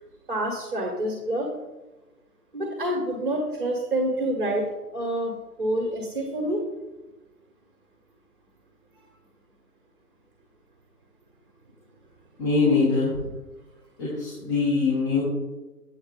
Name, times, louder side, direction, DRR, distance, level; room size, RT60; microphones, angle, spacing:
voice 1, 0.3-1.5 2.5-4.6 4.9-6.6, right 1 dB, 35° right, 0 dB, 1.4 m, -27 dB
voice 2, 12.4-13.1 14.0-15.2, left 4 dB, 20° left, -9 dB, 2.0 m, -22 dB
8.1 x 6.8 x 3.8 m, 1.1 s
figure-of-eight pair, 150°, 48 cm